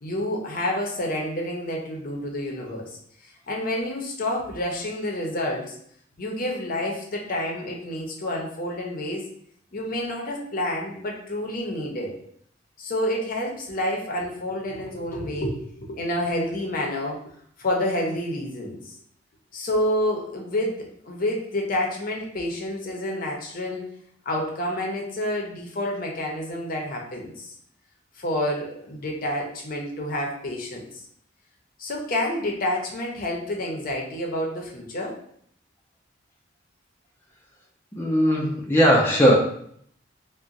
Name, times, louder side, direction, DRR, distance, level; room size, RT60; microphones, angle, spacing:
voice 1, 0.0-5.8 6.2-9.3 9.7-12.2 12.8-19.0 19.5-23.8 24.3-27.6 28.2-30.9 31.8-35.2, left 1 dB, 50° left, 0 dB, 0.6 m, -29 dB
voice 2, 38.0-39.3, equal, 10° left, -4 dB, 0.4 m, -18 dB
2.5 x 2.1 x 3.9 m, 0.65 s
head